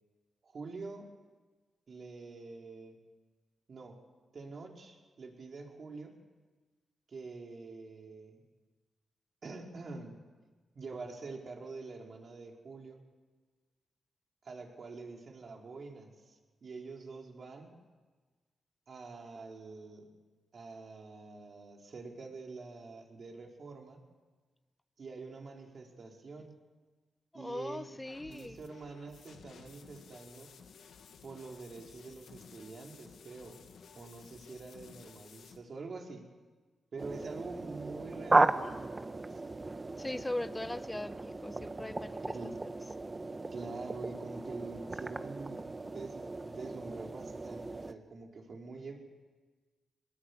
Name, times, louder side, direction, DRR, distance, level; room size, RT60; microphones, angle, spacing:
voice 1, 0.4-1.1 1.9-3.0 3.7-4.0 4.3-6.1 7.1-8.4 9.4-10.2 10.7-13.0 14.4-17.8 18.9-20.1 20.5-24.0 25.0-26.5 27.3-27.9 28.2-30.5 31.2-33.7 33.9-36.3 36.9-39.4 42.3-42.6 43.5-49.0, right 3 dB, 55° right, 1 dB, 4.6 m, -46 dB
voice 2, 27.3-28.6 40.0-42.4, left 1 dB, 15° left, 12 dB, 1.1 m, -39 dB
sound 1, 28.0-35.6, left 6 dB, 85° left, 2.1 m, -55 dB
sound 2, 37.0-47.9, right 2 dB, 30° right, 1.2 m, -35 dB
23.5 x 20.0 x 8.2 m, 1.4 s
cardioid pair, 70°, 0 cm